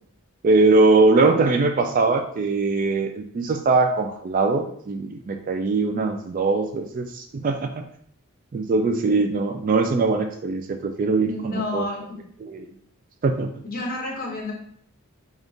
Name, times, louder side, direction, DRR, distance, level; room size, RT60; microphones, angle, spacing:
voice 1, 0.4-7.9 8.5-11.8 12.4-12.7 13.2-13.5, right 3 dB, 40° right, 6 dB, 0.3 m, -21 dB
voice 2, 11.2-12.2 13.6-14.5, left 2 dB, 45° left, -2 dB, 1.1 m, -30 dB
3.5 x 2.4 x 3.9 m, 0.65 s
head